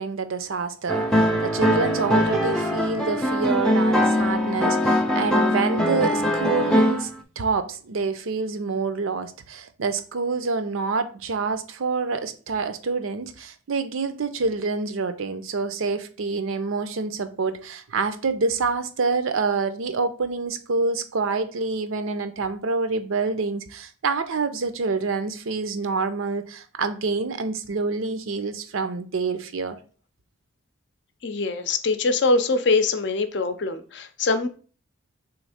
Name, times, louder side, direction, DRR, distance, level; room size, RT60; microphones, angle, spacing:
voice 1, 0.0-7.1 7.4-29.8, right 4 dB, 80° right, 0.5 m, -27 dB
sound 1, 0.9-7.1, equal, 5° left, 0.4 m, -22 dB
voice 2, 31.2-34.5, left 3 dB, 55° left, 0.5 m, -23 dB
3.5 x 3.1 x 4.8 m
head